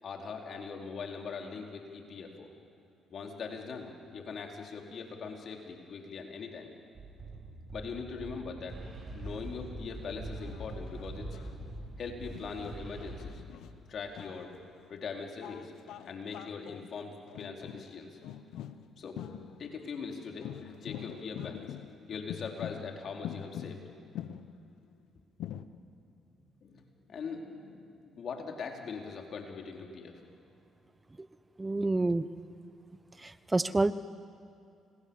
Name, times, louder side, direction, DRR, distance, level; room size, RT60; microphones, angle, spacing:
voice 1, 0.0-2.5 3.1-6.7 7.7-8.8 9.1-11.4 12.0-13.4 13.9-14.5 14.9-15.7 16.0-18.2 19.0-19.2 19.6-21.7 22.1-23.8 26.6-26.8 27.1-30.2, left 5 dB, 60° left, 2 dB, 4.3 m, -41 dB
sound 1, 6.9-13.2, right 2 dB, 55° right, 7.5 m, -43 dB
sound 2, 9.2-9.9 10.3-15.0 15.4-20.0 20.4-24.7 25.4-25.7, left 10 dB, 75° left, 1.0 m, -45 dB
voice 2, 31.6-32.2 33.5-33.9, right 2 dB, 20° right, 14 dB, 0.9 m, -27 dB
30.0 x 26.0 x 7.3 m, 2.6 s
supercardioid pair, 55°, 0 cm